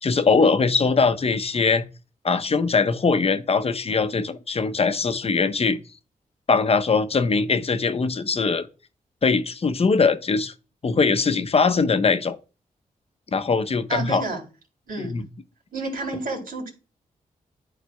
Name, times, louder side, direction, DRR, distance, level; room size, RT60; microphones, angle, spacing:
voice 1, 0.0-1.8 2.2-5.8 6.5-8.7 9.2-10.5 10.8-12.4 13.3-14.2 15.1-15.2, left 4 dB, 45° left, 0.7 m, -21 dB
voice 2, 13.9-14.4 14.9-15.1 15.7-16.7, right 2 dB, 75° right, 3.3 m, -30 dB
11.0 x 4.1 x 2.3 m
cardioid pair, 60°, 15 cm